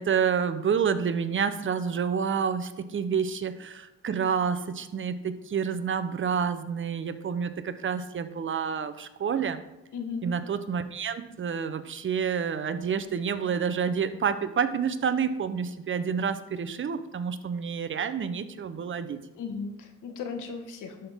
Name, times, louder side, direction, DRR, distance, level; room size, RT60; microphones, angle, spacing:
voice 1, 0.0-9.6 10.2-19.2, right 6 dB, 40° right, 11 dB, 0.8 m, -29 dB
voice 2, 9.9-10.3 19.3-21.1, left 5 dB, 80° left, 5 dB, 1.4 m, -36 dB
12.0 x 5.7 x 3.6 m, 1.0 s
cardioid pair, 90°, 30 cm